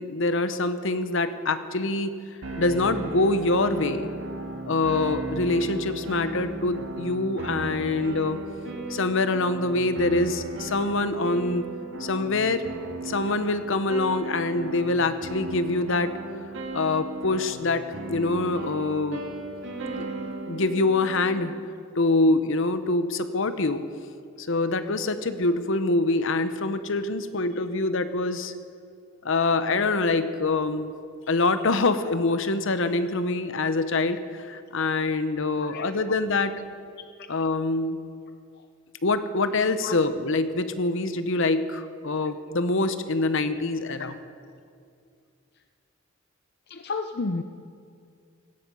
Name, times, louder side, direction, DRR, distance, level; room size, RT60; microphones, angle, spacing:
voice 1, 0.0-2.2 2.6-8.4 8.9-11.7 12.0-12.7 13.0-16.1 16.7-19.4 20.0-20.1 20.5-21.5 21.9-23.8 24.4-28.5 29.2-30.9 31.3-36.5 37.3-38.0 39.0-44.2, left 2 dB, 70° left, 11 dB, 1.0 m, -25 dB
sound 1, 2.4-21.7, right 2 dB, 65° right, 2.1 m, -36 dB
voice 2, 46.7-47.4, left 3 dB, 50° left, 7 dB, 0.6 m, -31 dB
17.5 x 15.0 x 5.5 m, 2.3 s
head